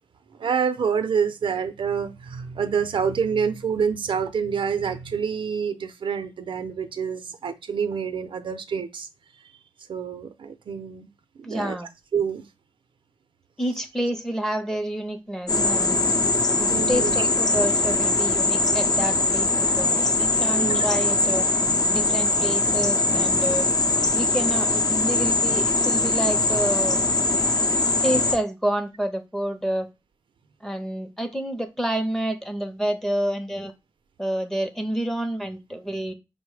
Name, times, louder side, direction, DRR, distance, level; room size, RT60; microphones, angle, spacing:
voice 1, 0.4-9.1 9.9-11.1 11.4-11.8 12.1-12.5 16.7-17.3 20.6-20.9, right 6 dB, 85° right, 0.5 m, -27 dB
voice 2, 11.4-11.9 13.6-16.0 16.6-21.5 21.9-23.7 24.1-27.0 28.0-29.9 30.6-33.7 34.2-36.1, right 1 dB, 5° left, 0.6 m, -28 dB
sound 1, 15.5-28.4, left 2 dB, 45° left, 0.6 m, -22 dB
5.1 x 2.1 x 4.7 m
wide cardioid pair, 145°, 8 cm